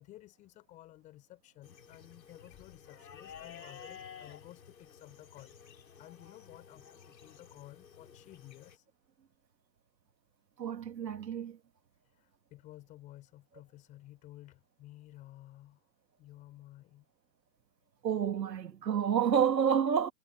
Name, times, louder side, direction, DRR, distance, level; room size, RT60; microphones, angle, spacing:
voice 1, 0.0-8.9 12.0-15.8 16.2-17.1, left 15 dB, 15° left, 7.1 m, -54 dB
sound 1, 1.6-8.8, left 7 dB, 80° left, 5.2 m, -52 dB
voice 2, 10.6-11.6 18.0-20.1, right 8 dB, 85° right, 2.2 m, -29 dB
hypercardioid pair, 170°, 50 cm